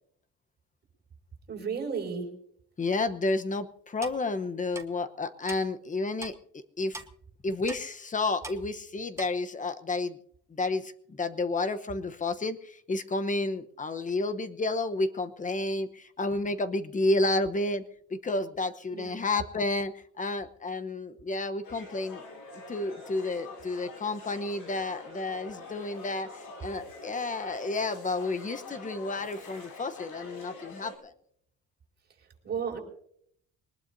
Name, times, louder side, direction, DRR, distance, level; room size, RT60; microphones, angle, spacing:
voice 1, 1.5-2.3 18.9-19.2 32.4-32.8, right 6 dB, 35° right, 1 dB, 5.3 m, -33 dB
voice 2, 2.8-6.3 6.8-7.0 7.4-10.2 10.5-17.8 18.1-22.2 22.7-31.1, left 2 dB, 25° left, 10 dB, 1.0 m, -31 dB
Clock, 4.0-4.2 4.7-4.8 5.5-5.6 6.2-6.3 6.9-7.1 7.7-7.8 8.4-8.6 9.2-9.3, right 2 dB, 10° right, 1.2 m, -40 dB
sound 1, 21.6-31.0, left 3 dB, 90° left, 5.8 m, -45 dB
22.5 x 20.0 x 2.7 m, 0.67 s
cardioid pair, 125°, 31 cm